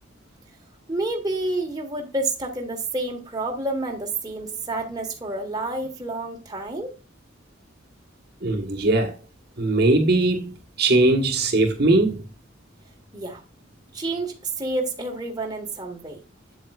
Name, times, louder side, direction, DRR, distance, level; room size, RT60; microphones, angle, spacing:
voice 1, 0.9-6.9 13.1-13.4 13.9-16.2, right 2 dB, 20° right, 1.5 m, -29 dB
voice 2, 8.4-9.1 9.6-12.2, right 2 dB, 55° right, 1.4 m, -20 dB
8.5 x 7.9 x 2.4 m
head